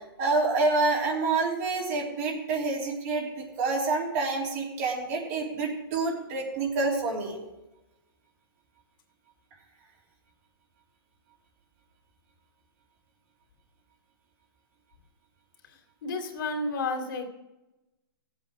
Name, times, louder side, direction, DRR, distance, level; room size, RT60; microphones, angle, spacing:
voice 1, 0.2-7.4, right 3 dB, 40° right, -1 dB, 3.1 m, -27 dB
voice 2, 15.6-17.3, left 3 dB, 60° left, 3 dB, 2.5 m, -32 dB
16.5 x 8.0 x 4.8 m, 0.99 s
hypercardioid pair, 145°, 13 cm